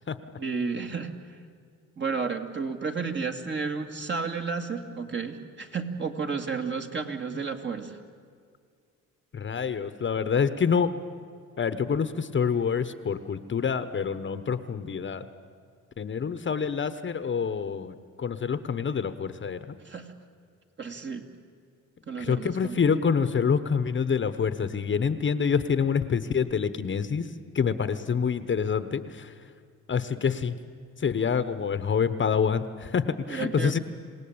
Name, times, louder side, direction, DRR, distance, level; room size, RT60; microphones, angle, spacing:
voice 1, 0.4-1.4 2.0-8.0 19.8-20.1 20.8-21.3 22.1-22.9 33.3-33.8, right 5 dB, 40° right, 4 dB, 2.3 m, -32 dB
voice 2, 9.3-10.9 11.6-15.2 16.0-19.8 22.2-27.3 27.5-29.3 29.9-30.5 31.0-33.8, left 6 dB, 40° left, 12 dB, 1.1 m, -27 dB
27.5 x 17.5 x 8.8 m, 2.1 s
cardioid pair, 90°, 30 cm